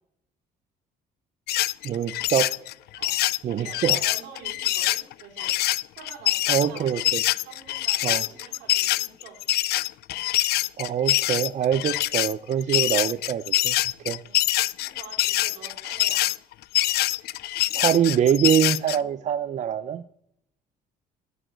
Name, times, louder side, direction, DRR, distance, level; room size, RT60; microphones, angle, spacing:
sound 1, 1.5-19.0, left 17 dB, 70° left, 0.4 m, -24 dB
voice 1, 1.8-2.5 3.4-4.0 6.5-7.2 8.0-8.2 10.8-13.8 14.0-14.2 17.7-20.0, right 9 dB, 45° right, 13 dB, 0.5 m, -24 dB
voice 2, 3.0-5.5 6.0-6.9 7.4-9.4 14.2-16.4, right 7 dB, 85° right, 2 dB, 3.0 m, -46 dB
11.0 x 6.3 x 8.1 m, 0.73 s
cardioid pair, 110°, 17 cm